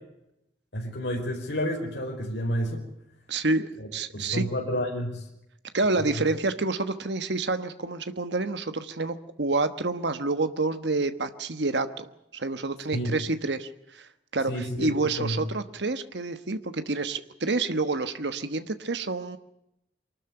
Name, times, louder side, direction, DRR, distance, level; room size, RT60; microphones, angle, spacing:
voice 1, 0.7-2.8 3.8-3.9 4.1-5.2 12.9-13.1 14.5-15.4, equal, 70° left, 0 dB, 5.0 m, -30 dB
voice 2, 3.3-4.5 5.7-19.4, right 3 dB, 70° right, 10 dB, 1.3 m, -28 dB
24.0 x 13.0 x 9.9 m, 0.84 s
head